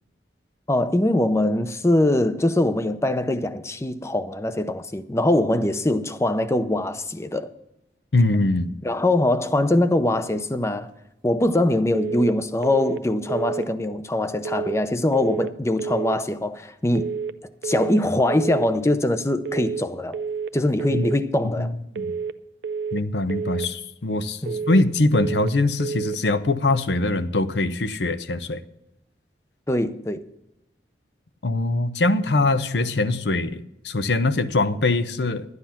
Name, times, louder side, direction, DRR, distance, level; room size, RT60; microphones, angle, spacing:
voice 1, 0.7-7.5 8.8-10.9 11.2-17.1 17.6-20.2 20.5-21.7 24.4-24.6 29.7-30.2, left 1 dB, 15° left, 0.6 m, -22 dB
voice 2, 8.1-8.8 20.9-21.1 21.6-22.1 22.9-28.6 31.4-35.5, left 2 dB, 75° left, 0.7 m, -22 dB
sound 1, 11.9-12.3 12.6-13.0 13.3-13.7 14.4-14.8 15.1-15.5 15.8-16.2 16.9-17.3 17.6-18.0 18.3-18.7 19.4-19.8 20.1-20.5 20.8-21.2 21.9-22.3 22.6-23.0 23.3-23.7 24.5-24.9 25.1-25.5 25.8-26.2, right 5 dB, 80° right, 0.5 m, -29 dB
12.0 x 9.7 x 5.7 m
head